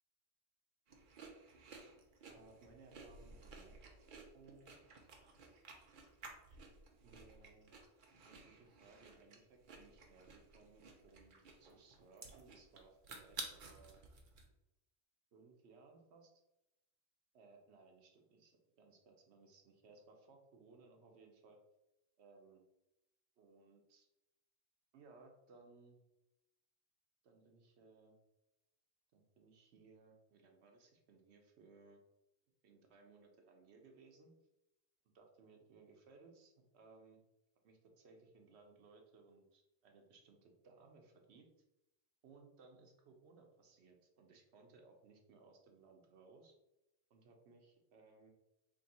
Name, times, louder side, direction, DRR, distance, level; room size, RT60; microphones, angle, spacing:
sound 1, 0.9-14.4, right 4 dB, 55° right, 0.8 m, -54 dB
voice 1, 2.3-4.1 4.3-4.8 7.0-7.8 8.2-14.0 15.3-16.3 17.3-21.6 22.2-22.6 23.4-24.1 24.9-26.0 27.2-28.2 29.1-32.0 32.6-34.3 35.1-37.2 37.6-41.5 42.2-46.5 47.1-48.3, right 4 dB, 75° right, 2 dB, 1.0 m, -63 dB
3.6 x 2.6 x 4.1 m, 0.92 s
omnidirectional pair, 1.1 m